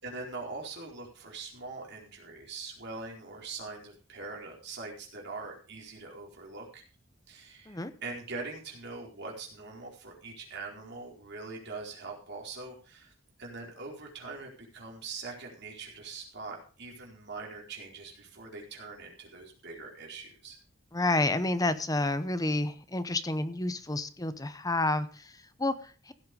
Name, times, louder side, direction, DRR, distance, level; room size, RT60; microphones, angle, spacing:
voice 1, 0.0-6.8 7.3-13.1 13.4-20.6, right 3 dB, 55° right, -1 dB, 4.5 m, -42 dB
voice 2, 20.9-26.1, left 2 dB, 20° left, 12 dB, 0.9 m, -30 dB
16.0 x 7.8 x 5.2 m, 0.38 s
head